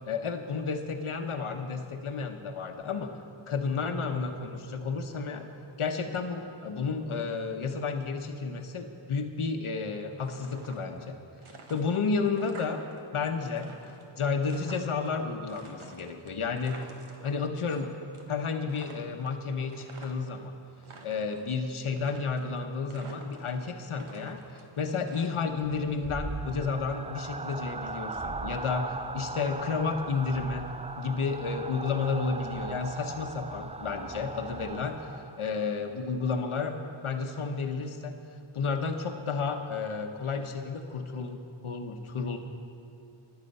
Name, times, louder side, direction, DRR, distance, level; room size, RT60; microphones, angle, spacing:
voice 1, 0.1-3.2 3.5-5.5 5.8-11.2 11.7-12.8 13.1-13.7 14.1-16.9 17.2-17.9 18.3-20.5 21.0-30.7 31.0-35.0 35.4-36.8 37.0-38.1 38.5-42.4, left 4 dB, 85° left, 5 dB, 1.0 m, -31 dB
sound 1, 10.2-11.1 11.4-13.0 13.3-15.1 15.5-17.9 18.1-18.4 18.7-20.4 20.7-21.5 22.0-22.6 22.9-23.6 23.9-25.7, right 3 dB, 90° right, 1.5 m, -50 dB
sound 2, 25.6-35.6, right 3 dB, 15° right, 0.4 m, -39 dB
24.5 x 8.2 x 5.4 m, 2.7 s
wide cardioid pair, 60°, 48 cm